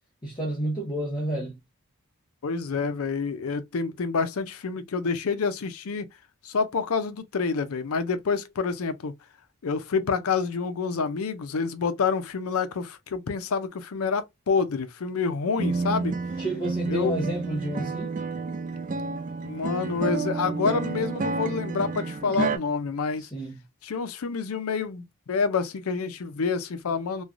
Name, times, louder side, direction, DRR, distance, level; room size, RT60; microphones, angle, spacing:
voice 1, 0.2-1.6 16.4-18.1 23.2-23.6, right 1 dB, 20° left, 0.7 m, -30 dB
voice 2, 2.4-6.1 6.4-9.1 9.6-16.1 16.9-17.2 19.4-23.3 23.8-27.2, left 5 dB, 75° left, 0.5 m, -28 dB
sound 1, 15.6-22.6, right 4 dB, 35° right, 0.3 m, -30 dB
3.2 x 2.2 x 2.5 m
head